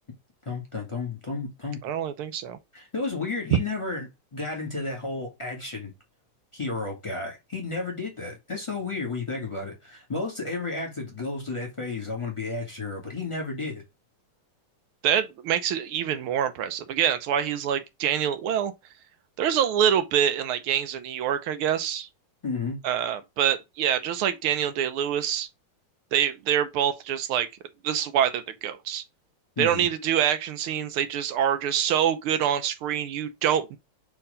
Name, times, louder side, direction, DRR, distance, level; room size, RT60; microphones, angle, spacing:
voice 1, 0.5-1.8 2.7-5.9 6.5-13.8 22.4-22.8 29.6-29.9, left 3 dB, 15° left, 1.8 m, -32 dB
voice 2, 1.8-2.6 15.0-18.7 19.4-22.1 22.8-25.5 26.1-27.5 27.8-29.0 29.6-33.8, right 9 dB, 85° right, 1.7 m, -25 dB
4.7 x 3.8 x 5.4 m
omnidirectional pair, 2.3 m